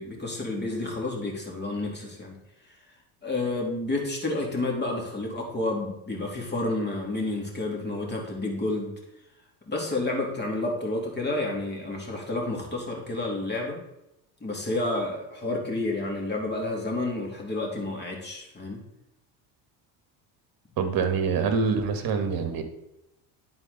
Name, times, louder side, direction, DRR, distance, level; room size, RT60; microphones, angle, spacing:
voice 1, 0.0-2.4 3.2-8.9 9.7-13.8 14.4-18.8, left 2 dB, 20° left, 0 dB, 2.6 m, -30 dB
voice 2, 20.8-22.6, right 5 dB, 45° right, 7 dB, 1.5 m, -25 dB
10.5 x 4.5 x 4.0 m, 0.87 s
supercardioid pair, 90°, 50 cm